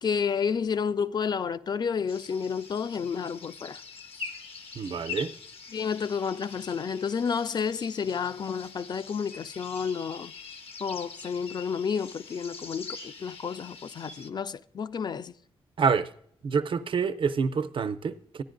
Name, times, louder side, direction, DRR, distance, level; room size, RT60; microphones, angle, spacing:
voice 1, 0.0-3.8 5.7-10.3 10.8-15.3, left 6 dB, 45° left, 0.3 m, -30 dB
sound 1, 2.1-14.3, left 5 dB, 70° left, 0.7 m, -44 dB
voice 2, 4.7-5.3 15.8-16.1 16.4-18.4, right 5 dB, 55° right, 0.5 m, -27 dB
14.5 x 10.0 x 2.5 m
cardioid pair, 75°, 10 cm